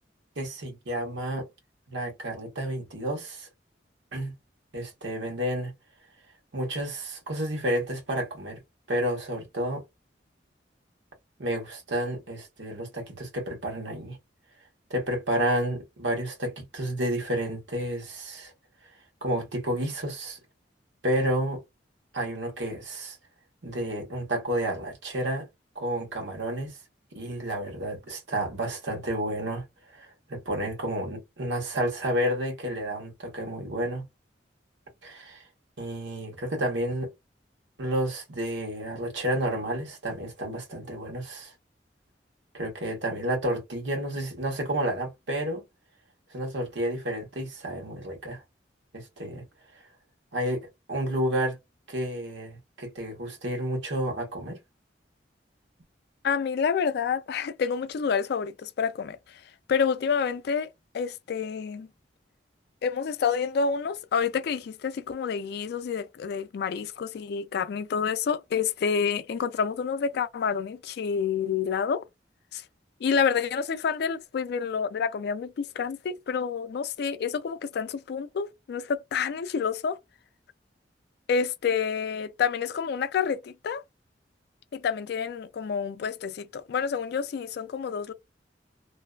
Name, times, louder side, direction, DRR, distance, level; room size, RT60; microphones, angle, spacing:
voice 1, 0.4-1.4 1.9-3.5 4.1-4.3 4.7-5.7 6.5-8.6 8.9-9.8 11.4-14.2 14.9-18.5 19.2-20.4 21.0-21.6 22.1-23.2 23.6-25.5 25.7-26.8 27.1-34.0 35.0-35.4 35.8-37.1 37.8-41.5 42.5-45.6 46.3-48.4 48.9-49.4 50.3-51.6 51.9-54.6, right 1 dB, 90° right, 1.0 m, -30 dB
voice 2, 56.2-59.4 59.7-61.9 62.8-72.0 72.5-72.6 73.0-80.0 81.3-83.8 84.7-88.1, left 6 dB, 60° left, 0.3 m, -28 dB
2.5 x 2.4 x 2.2 m
head